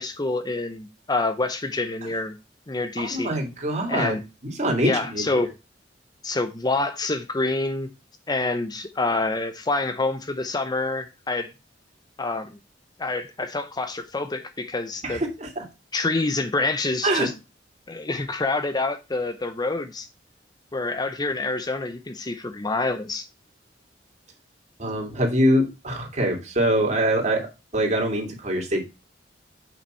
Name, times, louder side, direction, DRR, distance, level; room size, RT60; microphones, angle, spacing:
voice 1, 0.0-2.4 2.7-3.3 3.9-4.2 4.8-5.5 6.2-7.9 8.3-11.5 12.2-12.6 13.0-15.2 15.9-17.3 17.9-20.1 20.7-23.3, left 3 dB, 20° left, 0.6 m, -27 dB
voice 2, 3.0-4.2 4.4-5.4 15.0-15.6 17.0-17.3 24.8-27.5 27.7-28.8, right 1 dB, 40° right, 2.7 m, -24 dB
7.0 x 5.8 x 4.4 m
head